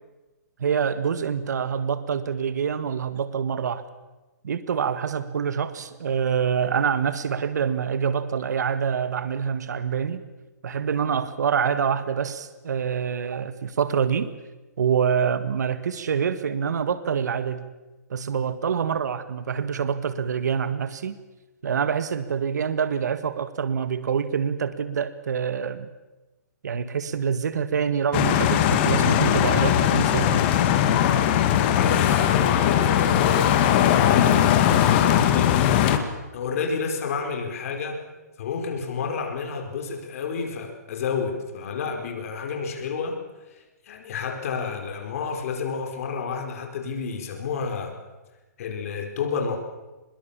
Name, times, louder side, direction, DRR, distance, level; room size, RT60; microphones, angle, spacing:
voice 1, 0.6-3.9 4.4-10.2 10.6-14.3 14.8-17.7 18.1-21.1 21.6-25.9 26.6-30.4, right 7 dB, 75° right, 12 dB, 1.6 m, -26 dB
sound 1, 28.1-36.0, left 10 dB, 35° left, 2.2 m, -20 dB
voice 2, 31.8-35.6 36.3-38.0 38.4-43.2 43.5-47.9 48.6-49.6, left 5 dB, 55° left, 4 dB, 4.8 m, -30 dB
24.0 x 21.5 x 7.4 m, 1.1 s
hypercardioid pair, 150°, 9 cm